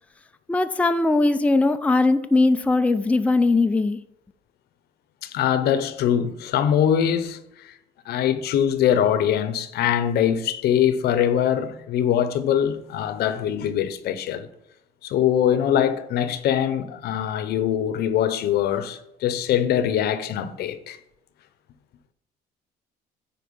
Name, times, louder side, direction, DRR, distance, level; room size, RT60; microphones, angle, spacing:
voice 1, 0.5-4.0, left 3 dB, 10° left, 0.4 m, -20 dB
voice 2, 5.2-7.7 8.1-14.5 15.0-21.0, left 9 dB, 70° left, 0.8 m, -23 dB
9.4 x 4.5 x 5.4 m
cardioid pair, 110°, 17 cm